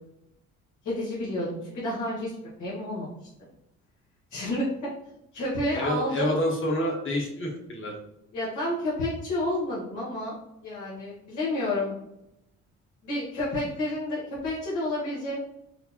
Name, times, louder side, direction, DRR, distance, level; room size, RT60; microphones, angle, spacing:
voice 1, 0.8-3.1 4.3-4.9 5.3-6.4 8.3-10.3 10.6-11.9 13.0-15.4, left 1 dB, 80° left, -7 dB, 1.4 m, -30 dB
voice 2, 5.7-7.9, left 1 dB, 40° left, 0 dB, 1.2 m, -28 dB
5.0 x 2.0 x 2.9 m, 0.82 s
cardioid pair, 90°, 30 cm